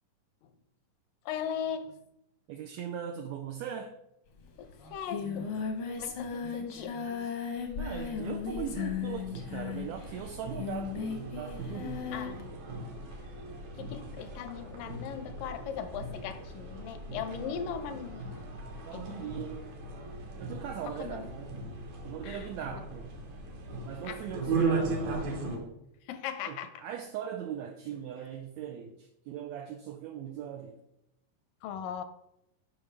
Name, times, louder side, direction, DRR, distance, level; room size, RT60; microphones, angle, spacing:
voice 1, 1.3-2.0 4.6-5.5 6.0-7.0 12.1-12.5 13.8-18.3 18.9-19.3 20.9-21.3 22.2-22.5 24.0-24.8 26.1-26.7 31.6-32.0, left 8 dB, 85° left, 10 dB, 2.4 m, -39 dB
voice 2, 2.5-3.9 7.8-12.3 17.3-17.7 18.8-19.7 20.4-21.6 22.0-23.1 23.8-25.3 26.5-30.8, right 9 dB, 85° right, 5 dB, 1.6 m, -40 dB
Singing, 4.4-4.5 4.7-12.4, left 6 dB, 70° left, 1.3 m, -36 dB
sound 1, 7.6-25.6, right 3 dB, 65° right, 2.6 m, -38 dB
10.5 x 5.3 x 3.4 m, 0.82 s
omnidirectional pair, 3.8 m